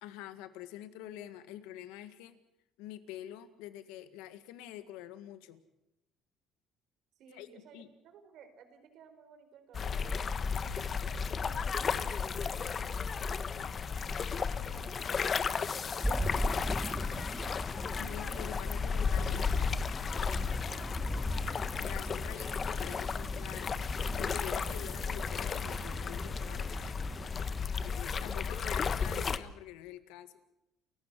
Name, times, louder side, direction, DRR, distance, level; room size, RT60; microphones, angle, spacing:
voice 1, 0.0-2.4 2.8-5.6 7.3-7.9 18.0-19.7 21.8-23.7 24.2-27.0 27.9-30.3, left 12 dB, 85° left, 11 dB, 1.8 m, -46 dB
voice 2, 7.2-10.3 10.9-18.4 20.6-21.6 27.9-28.2, right 6 dB, 70° right, 9 dB, 4.3 m, -57 dB
sound 1, 9.7-29.4, left 6 dB, 40° left, 1.3 m, -34 dB
sound 2, 16.0-27.7, equal, 5° left, 2.5 m, -39 dB
29.5 x 15.5 x 7.6 m, 0.89 s
supercardioid pair, 80°, 0 cm